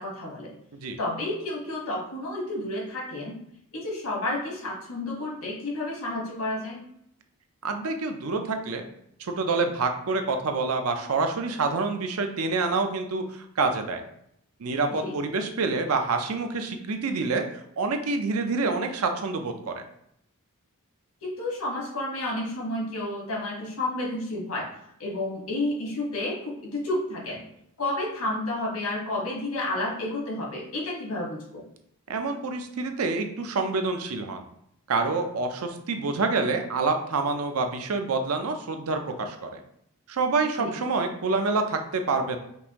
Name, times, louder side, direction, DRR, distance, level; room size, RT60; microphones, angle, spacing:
voice 1, 0.0-0.5 1.0-3.4 3.7-6.8 15.0-15.1 21.2-24.7 25.0-27.4 27.8-31.6 40.6-40.7, left 1 dB, 80° left, -3 dB, 1.5 m, -31 dB
voice 2, 7.6-8.9 9.2-14.0 14.6-19.8 32.1-34.4 34.9-39.6 40.1-42.4, right 3 dB, 75° right, 6 dB, 0.6 m, -27 dB
5.3 x 2.6 x 2.9 m, 0.73 s
head